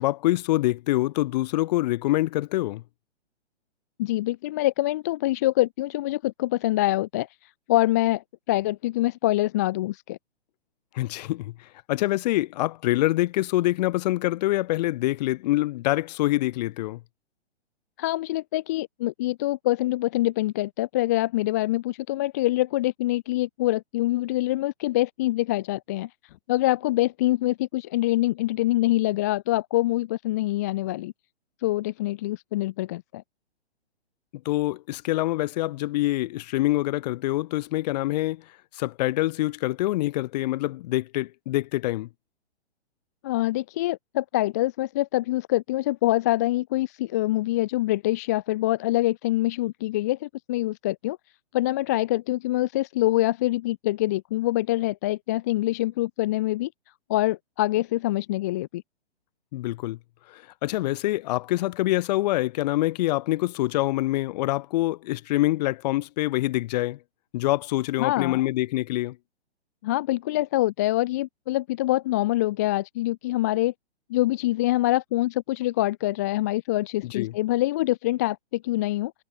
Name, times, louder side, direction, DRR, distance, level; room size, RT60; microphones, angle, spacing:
voice 1, 0.0-2.8 10.9-17.0 34.5-38.4 38.7-42.1 59.5-60.0 60.3-67.0 67.3-69.2 77.0-77.3, left 17 dB, 40° left, 1.8 m, -25 dB
voice 2, 4.0-7.3 7.7-10.2 18.0-26.1 26.5-31.1 31.6-33.2 43.2-51.2 51.5-56.7 57.1-58.8 68.0-68.4 69.8-73.7 74.1-79.1, left 16 dB, 15° left, 0.4 m, -25 dB
figure-of-eight pair, 130°, 33 cm